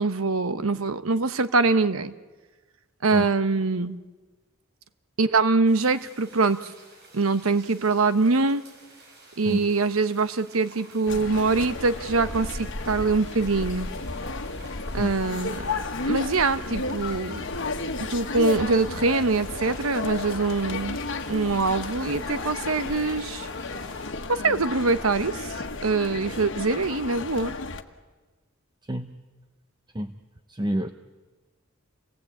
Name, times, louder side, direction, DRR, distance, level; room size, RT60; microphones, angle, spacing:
voice 1, 0.0-2.1 3.0-4.0 5.2-6.7 7.1-8.6 9.4-13.9 14.9-15.7 16.0-17.7 18.0-21.0 21.3-23.5 24.3-25.5 25.8-27.5, right 3 dB, 80° right, 12 dB, 1.0 m, -24 dB
sound 1, 5.6-24.1, right 2 dB, 55° right, 6.1 m, -51 dB
sound 2, 11.1-27.8, left 3 dB, 65° left, 1.5 m, -33 dB
voice 2, 30.5-30.9, right 1 dB, 20° right, 8 dB, 0.8 m, -28 dB
28.0 x 19.0 x 8.5 m, 1.3 s
head